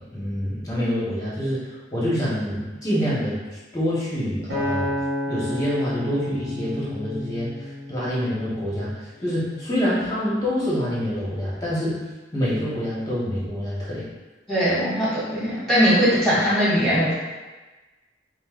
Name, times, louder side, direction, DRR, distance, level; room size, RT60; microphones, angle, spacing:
voice 1, 0.1-1.6 1.9-3.3 3.7-4.9 5.3-7.5 7.9-8.9 9.2-11.9 12.3-14.0, equal, 20° left, -8 dB, 1.0 m, -26 dB
Acoustic guitar, 4.5-8.8 9.4-9.7, left 1 dB, 70° right, 0.9 m, -30 dB
voice 2, 14.5-17.1, equal, 5° left, -11 dB, 1.5 m, -20 dB
5.4 x 2.1 x 2.4 m, 1.2 s
head